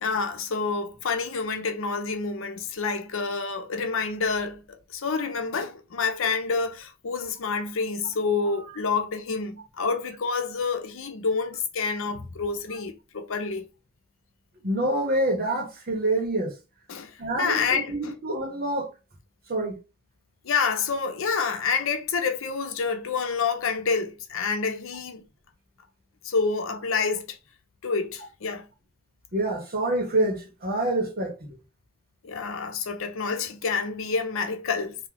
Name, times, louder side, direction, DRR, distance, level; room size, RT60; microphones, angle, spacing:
voice 1, 0.0-4.6 4.9-13.7 16.9-17.1 17.4-18.1 20.4-25.3 26.2-27.4 27.8-28.7 32.2-35.0, left 5 dB, 70° left, 0.7 m, -28 dB
voice 2, 14.6-16.5 17.2-18.9 19.5-19.7 29.3-31.6, right 1 dB, 50° right, 1.5 m, -26 dB
3.2 x 2.8 x 3.9 m
head